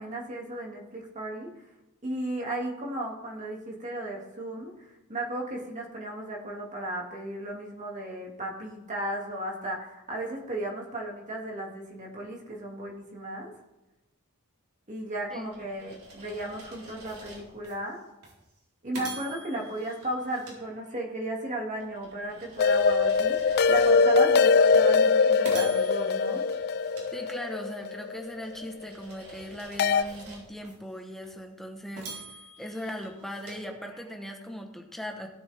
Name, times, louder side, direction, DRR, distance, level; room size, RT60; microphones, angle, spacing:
voice 1, 0.0-1.5 2.0-4.7 5.1-13.5 14.9-18.0 18.8-26.4, right 1 dB, 35° right, -1 dB, 2.4 m, -35 dB
voice 2, 15.3-15.7 27.1-32.2 32.6-35.3, equal, ahead, 2 dB, 1.1 m, -39 dB
sound 1, 15.3-17.7 18.2-18.4 18.9-21.3 21.8-24.2 24.7-24.9 25.4-27.8 28.3-30.7 31.2-31.3 32.0-34.3, right 2 dB, 85° right, 4.2 m, -46 dB
sound 2, 22.6-28.6 29.8-30.0, left 5 dB, 45° left, 0.3 m, -22 dB
16.5 x 8.2 x 3.5 m, 0.96 s
head